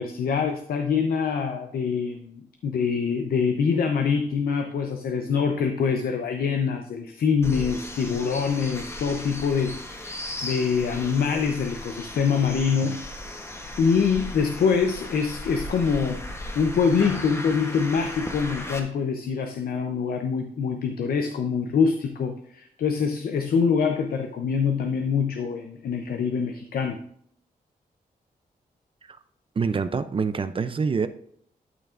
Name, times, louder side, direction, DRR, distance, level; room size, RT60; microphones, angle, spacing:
voice 1, 0.0-13.0 13.8-16.2 16.6-27.0, left 6 dB, 75° left, 5 dB, 0.6 m, -25 dB
sound 1, 7.4-18.8, left 1 dB, 15° left, 0.9 m, -37 dB
voice 2, 29.6-31.1, right 5 dB, 35° right, 12 dB, 0.4 m, -26 dB
12.5 x 5.7 x 2.5 m, 0.66 s
wide cardioid pair, 120°, 16 cm